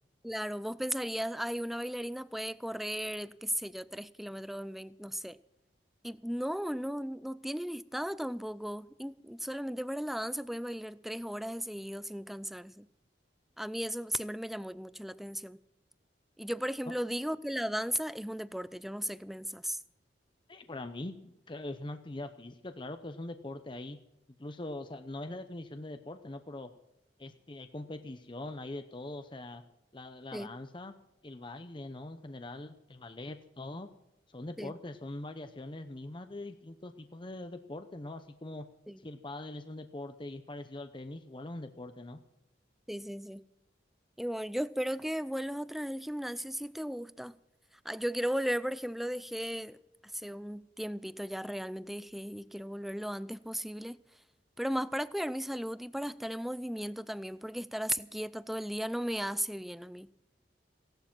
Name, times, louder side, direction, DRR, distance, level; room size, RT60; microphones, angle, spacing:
voice 1, 0.2-5.4 6.0-12.9 13.6-15.6 16.4-19.8 30.3-30.5 34.6-34.7 38.9-39.0 42.9-43.4 44.2-47.4 47.8-49.8 50.1-54.0 54.6-60.1, equal, ahead, 0.4 m, -36 dB
voice 2, 20.5-24.0 24.4-26.7 27.2-29.6 29.9-30.9 31.2-33.9 34.3-38.6 39.0-42.2, left 2 dB, 25° left, 0.7 m, -42 dB
17.0 x 11.5 x 6.1 m
head